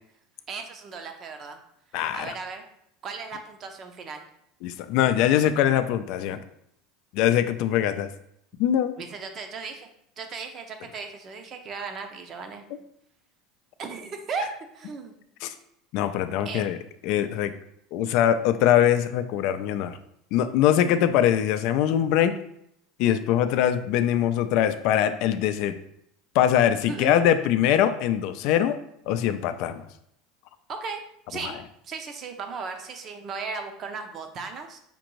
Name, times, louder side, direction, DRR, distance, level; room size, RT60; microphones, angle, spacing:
voice 1, 0.5-1.6 2.1-2.6 3.0-4.2 9.0-9.9 10.2-12.6 13.8-15.1 16.4-16.7 26.9-27.2 30.7-31.0 31.3-31.6 31.8-34.8, right 4 dB, 40° right, 5 dB, 0.7 m, -36 dB
voice 2, 1.9-2.3 4.6-6.4 7.1-8.1 8.6-9.0 15.4-15.5 15.9-16.8 17.0-17.5 17.9-20.0 20.3-22.4 23.0-25.7 26.3-28.8 29.1-29.9 31.4-31.5, left 10 dB, 65° left, 10 dB, 0.3 m, -22 dB
5.1 x 2.6 x 3.0 m, 0.74 s
supercardioid pair, 105°, 0 cm